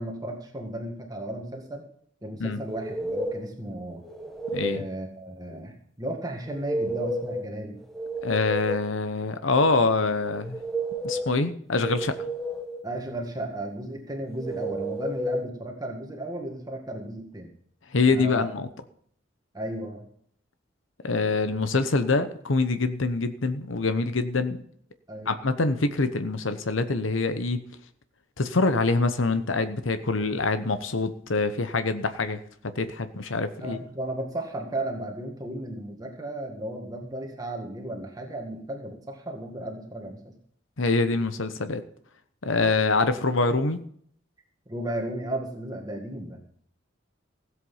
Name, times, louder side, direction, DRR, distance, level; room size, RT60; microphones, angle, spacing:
voice 1, 0.0-1.8 2.2-4.0 4.6-7.8 12.8-17.5 18.1-18.5 19.5-20.1 25.1-25.4 33.6-40.3 44.7-46.4, right 1 dB, 20° right, 1 dB, 2.0 m, -34 dB
sound 1, 2.7-3.5 4.0-4.9 6.5-7.5 7.8-8.9 10.3-11.4 11.8-12.8 14.4-15.4, right 1 dB, ahead, 1.3 m, -31 dB
voice 2, 4.5-4.8 8.2-10.6 11.0-12.2 17.9-18.7 21.0-24.6 25.3-27.6 28.4-33.8 40.8-41.8 42.4-43.8, left 3 dB, 75° left, 10 dB, 1.0 m, -25 dB
16.5 x 8.1 x 5.6 m, 0.62 s
head